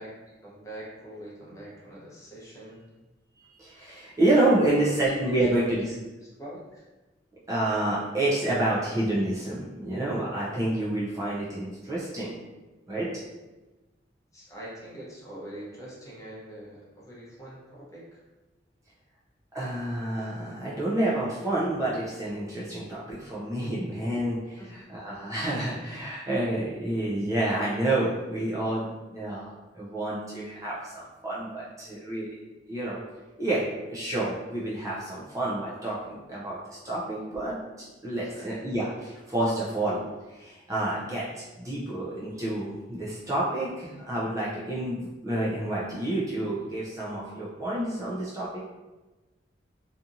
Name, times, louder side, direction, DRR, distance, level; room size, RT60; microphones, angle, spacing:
voice 1, 0.0-2.8 4.5-5.7 6.3-6.8 14.3-18.2 24.6-24.7 38.3-38.5, right 1 dB, 15° left, -6 dB, 0.7 m, -43 dB
voice 2, 3.6-5.9 7.5-12.4 12.9-13.1 19.5-32.4 32.7-33.0 33.4-36.6 36.8-37.6 38.0-48.6, right 1 dB, 20° right, -7 dB, 0.4 m, -29 dB
2.7 x 2.4 x 2.5 m, 1.1 s
head